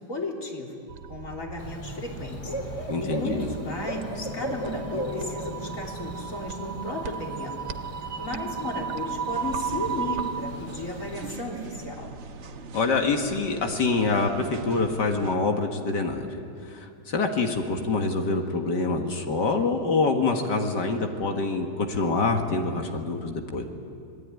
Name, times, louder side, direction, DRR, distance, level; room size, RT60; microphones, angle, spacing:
voice 1, 0.0-7.6 8.2-12.1, left 2 dB, 45° left, -1 dB, 3.8 m, -34 dB
sound 1, 0.9-10.6, right 7 dB, 70° right, 1.5 m, -35 dB
Bird / Cricket, 1.6-11.3, equal, 20° left, 2.7 m, -37 dB
voice 2, 2.9-3.5 12.7-16.3 16.7-23.6, left 3 dB, 75° left, 3 dB, 2.4 m, -26 dB
sound 2, 9.3-15.4, right 3 dB, 50° right, 1.0 m, -41 dB
26.0 x 20.5 x 9.5 m, 2.5 s
omnidirectional pair, 1.9 m